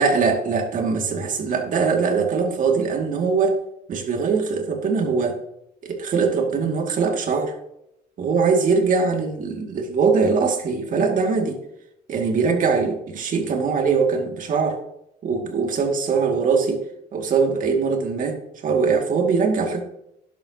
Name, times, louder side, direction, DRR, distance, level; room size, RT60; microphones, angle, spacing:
voice 1, 0.0-3.6 3.9-5.4 5.8-7.5 8.2-11.6 12.1-14.8 15.2-16.8 17.1-18.4 18.6-19.8, right 5 dB, 50° right, 3 dB, 2.2 m, -21 dB
11.5 x 11.0 x 2.9 m, 0.81 s
cardioid pair, 110°, 17 cm